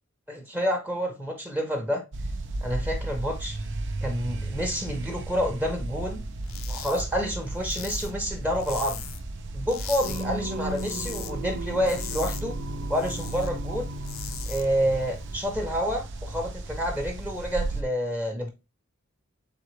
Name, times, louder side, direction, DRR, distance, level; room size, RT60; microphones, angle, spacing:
voice 1, 0.3-2.0 2.6-3.6 4.0-6.3 6.7-9.0 9.5-12.6 12.9-13.9 14.5-18.5, equal, 10° right, 0.8 m, -28 dB
sound 1, 2.1-17.8, right 2 dB, 60° right, 0.6 m, -35 dB
sound 2, 6.4-7.0 7.3-9.3 9.6-10.2 10.6-11.3 11.6-13.5 13.9-14.6, left 10 dB, 75° left, 0.6 m, -39 dB
Singing, 10.0-15.5, right 1 dB, 85° right, 1.1 m, -37 dB
3.8 x 3.8 x 3.1 m
head